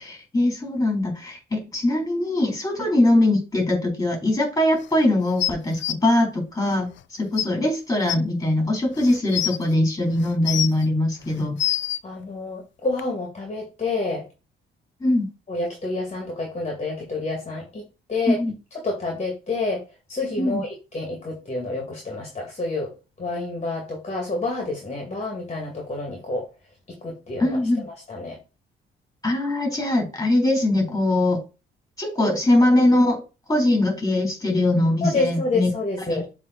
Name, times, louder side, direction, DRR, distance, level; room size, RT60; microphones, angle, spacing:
voice 1, 0.0-11.6 15.0-15.3 18.3-18.5 20.4-20.6 27.4-27.8 29.2-31.4 32.0-33.2 33.5-35.7 36.1-36.2, left 1 dB, 15° left, 1 dB, 3.5 m, -21 dB
sound 1, 5.4-5.9 7.0-7.1 7.4-7.5 8.1-8.2 9.0-9.6 10.2-10.8 11.3-12.0 13.0-13.1, left 12 dB, 70° left, 0.6 m, -25 dB
voice 2, 12.0-14.2 15.5-18.4 18.8-19.8 20.1-22.9 23.2-26.5 27.0-27.6 27.8-28.4 35.0-36.3, left 3 dB, 35° left, -1 dB, 2.4 m, -28 dB
7.5 x 3.7 x 4.2 m, 0.30 s
cardioid pair, 90°, 20 cm